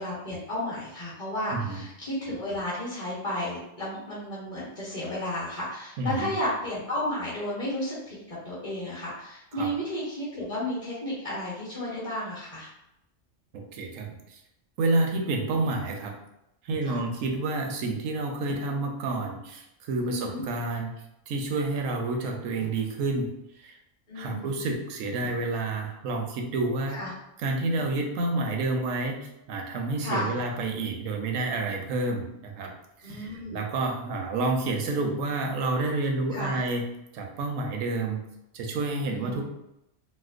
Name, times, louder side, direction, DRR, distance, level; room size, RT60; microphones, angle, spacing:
voice 1, 0.0-12.7 16.9-17.0 20.0-20.4 24.1-24.5 26.9-27.1 30.0-30.3 33.0-33.6 36.3-36.6 39.1-39.4, left 1 dB, 35° left, -8 dB, 0.8 m, -33 dB
voice 2, 1.5-1.8 6.0-6.4 9.5-9.7 13.5-14.4 14.8-16.1 16.6-20.9 21.3-23.3 23.6-23.8 24.1-27.0 27.4-32.7 33.0-36.8 37.1-38.2 38.5-39.4, right 2 dB, 85° right, 2 dB, 1.0 m, -29 dB
sound 1, 16.7-17.1 18.5-18.9 20.3-21.0 22.6-23.3 25.2-25.7 27.8-28.1 30.4-30.9 33.0-33.4, left 4 dB, 90° left, 1.1 m, -46 dB
4.2 x 2.2 x 2.4 m, 0.85 s
omnidirectional pair, 1.3 m